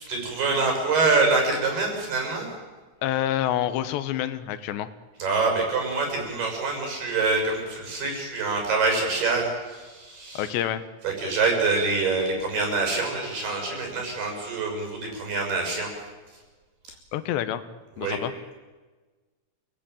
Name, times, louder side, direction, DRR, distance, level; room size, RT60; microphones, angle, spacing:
voice 1, 0.1-2.5 5.2-10.5 11.0-15.9 18.0-18.2, right 3 dB, 65° right, 2 dB, 8.1 m, -25 dB
voice 2, 3.0-4.9 10.3-10.8 17.1-17.6 18.0-18.3, left 12 dB, 80° left, 12 dB, 3.3 m, -27 dB
29.0 x 19.5 x 9.1 m, 1.3 s
omnidirectional pair, 4.9 m